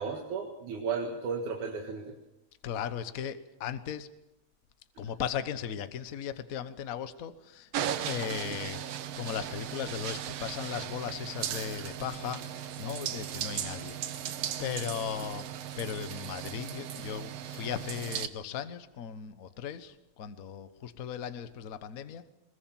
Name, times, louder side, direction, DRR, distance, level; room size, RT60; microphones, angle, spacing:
voice 1, 0.0-2.1, right 5 dB, 90° right, 1 dB, 3.4 m, -34 dB
voice 2, 2.6-4.1 5.0-7.7 8.1-14.2 14.6-15.5 15.8-22.3, left 8 dB, 80° left, 11 dB, 0.7 m, -37 dB
sound 1, 7.7-18.3, right 10 dB, 65° right, 1.9 m, -37 dB
22.0 x 21.5 x 7.3 m, 0.94 s
omnidirectional pair, 3.3 m